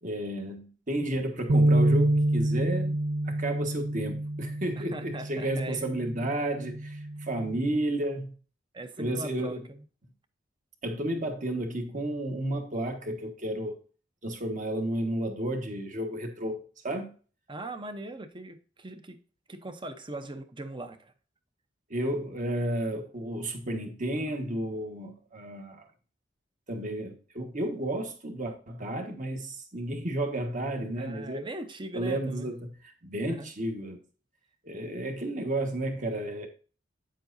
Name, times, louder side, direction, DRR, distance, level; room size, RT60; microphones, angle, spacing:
voice 1, 0.0-3.0 3.2-8.3 9.0-9.7 10.8-13.8 14.2-17.1 21.9-25.9 26.7-31.4 31.9-34.0 34.6-36.5, right 1 dB, 45° right, 1.5 m, -32 dB
sound 1, 1.5-7.7, right 1 dB, 85° right, 0.7 m, -27 dB
voice 2, 4.8-5.8 8.7-9.8 17.5-19.2 19.5-21.1 31.0-32.5 33.3-33.5, right 2 dB, 25° right, 0.8 m, -40 dB
8.9 x 7.6 x 2.7 m
head